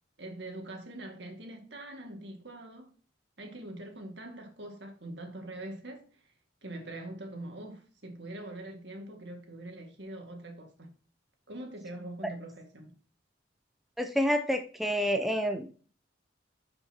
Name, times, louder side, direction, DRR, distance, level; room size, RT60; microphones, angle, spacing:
voice 1, 0.2-2.9 3.4-6.0 6.6-10.9 11.5-12.9, right 1 dB, 65° right, 2.0 m, -43 dB
voice 2, 14.0-15.7, equal, ahead, 0.5 m, -28 dB
11.0 x 5.4 x 2.9 m
head